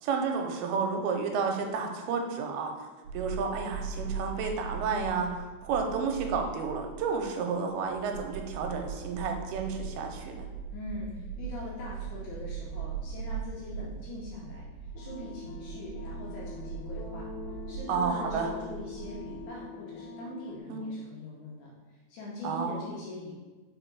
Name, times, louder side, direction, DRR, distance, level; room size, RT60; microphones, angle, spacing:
voice 1, 0.0-2.9 3.1-10.4 17.9-18.5 20.7-20.9 22.4-22.8, right 5 dB, 90° right, 3 dB, 2.5 m, -31 dB
sound 1, 3.0-19.5, right 6 dB, 60° right, 2.0 m, -40 dB
voice 2, 10.7-14.7 15.0-17.3 17.7-23.3, left 1 dB, 75° left, -5 dB, 1.9 m, -42 dB
sound 2, 14.9-20.6, left 3 dB, 90° left, 2.7 m, -43 dB
4.7 x 4.5 x 4.6 m, 1.3 s
omnidirectional pair, 4.4 m